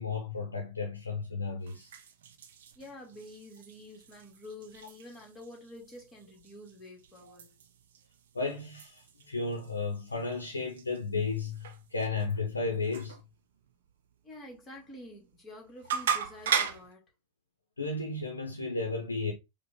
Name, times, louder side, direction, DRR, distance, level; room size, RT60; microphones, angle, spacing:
voice 1, 0.0-1.9 7.2-7.3 8.3-13.2 17.8-19.3, left 3 dB, 75° left, 0.9 m, -33 dB
sound 1, 1.6-16.9, right 7 dB, 60° right, 0.6 m, -40 dB
voice 2, 2.8-7.5 14.2-17.0, left 1 dB, 20° left, 2.0 m, -48 dB
4.9 x 2.5 x 3.6 m
figure-of-eight pair, 90°, 0 cm